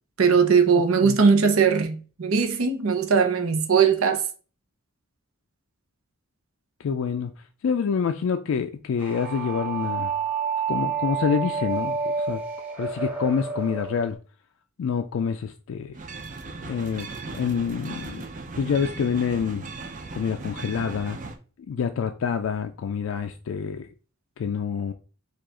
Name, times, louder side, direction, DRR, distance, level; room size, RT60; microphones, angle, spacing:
voice 1, 0.2-4.2, right 5 dB, 80° right, 0.7 m, -20 dB
voice 2, 6.8-7.3 7.6-10.1 10.7-12.4 12.8-14.2 14.8-15.9 16.6-17.1 17.3-18.3 18.6-19.7 20.1-21.2 21.7-23.9 24.4-24.9, left 6 dB, 65° left, 0.3 m, -27 dB
sound 1, 9.0-14.1, right 5 dB, 5° right, 1.4 m, -29 dB
sound 2, 15.9-21.4, right 3 dB, 40° right, 0.5 m, -37 dB
4.7 x 2.4 x 3.7 m
head